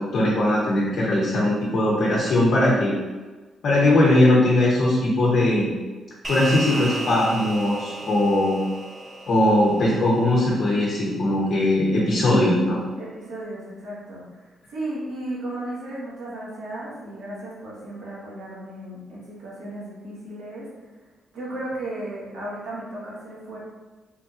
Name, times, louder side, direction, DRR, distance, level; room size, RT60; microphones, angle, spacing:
voice 1, 0.0-2.9 3.6-5.7 6.3-8.6 9.3-12.8, left 1 dB, 45° left, -5 dB, 0.6 m, -20 dB
sound 1, 6.2-10.9, right 2 dB, 15° right, 0.4 m, -34 dB
voice 2, 12.5-20.7 21.3-23.6, right 1 dB, 65° right, -7 dB, 1.2 m, -35 dB
3.5 x 2.8 x 2.3 m, 1.3 s
cardioid pair, 180°, 0 cm